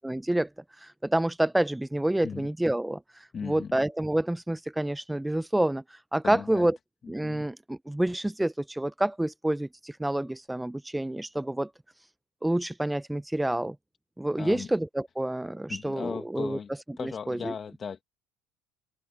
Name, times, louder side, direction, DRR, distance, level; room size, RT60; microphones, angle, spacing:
voice 1, 0.0-0.5 0.8-3.0 3.4-5.8 6.1-6.8 7.1-11.7 12.4-13.8 14.2-16.6 17.0-17.5, right 1 dB, 5° right, 0.5 m, -28 dB
voice 2, 3.3-3.8 6.2-6.7 7.0-7.5 14.4-14.7 15.7-16.7 17.0-18.0, left 6 dB, 35° left, 1.7 m, -37 dB
open air
supercardioid pair, 100°, 0 cm